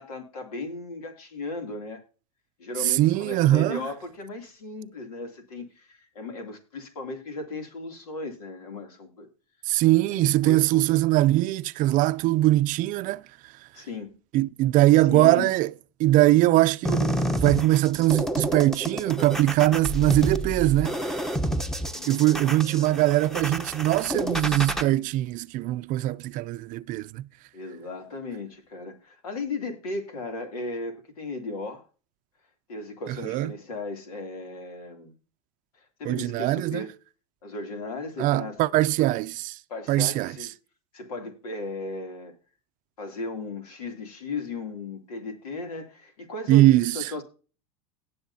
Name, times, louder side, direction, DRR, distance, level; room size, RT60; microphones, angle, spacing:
voice 1, 0.0-2.0 2.6-9.3 10.1-10.9 13.7-14.2 14.9-15.5 21.9-23.0 27.5-31.9 32.7-35.1 35.7-36.9 37.4-39.2 39.7-40.5 40.9-42.3 43.0-47.2, left 3 dB, 85° left, 2.9 m, -36 dB
voice 2, 2.8-3.8 9.7-13.2 14.3-15.7 16.0-21.2 22.1-27.3 33.1-33.5 36.0-36.8 38.2-39.6 39.9-40.3 46.5-46.9, right 16 dB, 45° right, 0.5 m, -22 dB
sound 1, 16.8-24.8, equal, ahead, 0.9 m, -29 dB
18.0 x 7.0 x 2.8 m
supercardioid pair, 110°, 18 cm